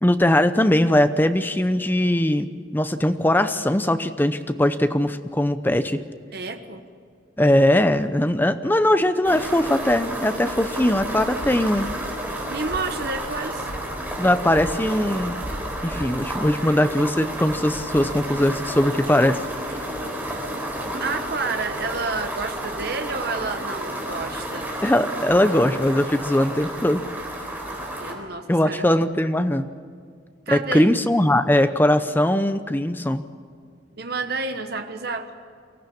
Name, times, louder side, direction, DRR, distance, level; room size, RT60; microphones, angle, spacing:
voice 1, 0.0-6.0 7.4-11.9 14.2-15.4 15.8-19.4 24.8-27.0 28.5-29.7 30.5-33.2, left 1 dB, 10° left, 10 dB, 0.7 m, -20 dB
voice 2, 6.3-6.8 12.5-13.7 21.0-24.7 28.0-28.9 30.5-31.0 34.0-35.3, right 3 dB, 55° right, 6 dB, 1.3 m, -30 dB
sound 1, 9.2-28.1, right 1 dB, 10° right, 3.8 m, -31 dB
23.5 x 16.0 x 8.7 m, 2.1 s
head